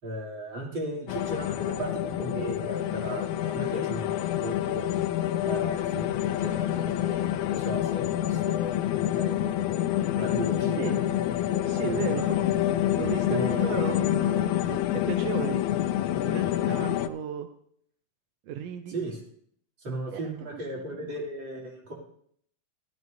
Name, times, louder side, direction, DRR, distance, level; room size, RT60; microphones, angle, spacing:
voice 1, 0.0-5.0 5.4-9.8 10.1-11.1 11.9-12.2 13.3-13.8 18.9-19.2 19.8-21.9, right 1 dB, 40° right, -2 dB, 3.3 m, -36 dB
sound 1, 1.1-17.1, left 12 dB, 80° left, 1.8 m, -27 dB
voice 2, 11.6-12.5 13.0-15.6 16.1-17.5 18.5-19.0 20.1-20.2 21.0-21.1, right 9 dB, 80° right, 7 dB, 1.5 m, -35 dB
15.5 x 13.0 x 2.7 m, 0.66 s
omnidirectional pair, 3.5 m